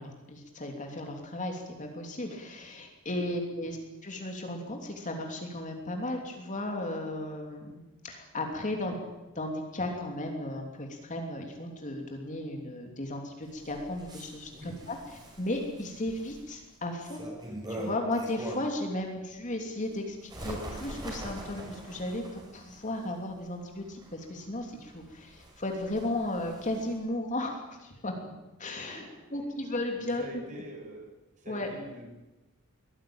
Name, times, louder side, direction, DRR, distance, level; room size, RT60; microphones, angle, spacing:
voice 1, 0.0-3.8 4.0-7.8 8.0-9.0 9.4-15.0 15.4-17.2 17.7-28.3 28.6-30.2 31.5-31.7, left 1 dB, 35° left, 2 dB, 3.1 m, -35 dB
Bird, 13.4-18.9 19.3-27.0, right 1 dB, 20° right, 6.1 m, -43 dB
voice 2, 28.8-29.6 30.2-31.0 31.4-32.1, right 1 dB, 35° right, 0 dB, 7.4 m, -46 dB
23.0 x 16.0 x 8.9 m, 1.0 s
head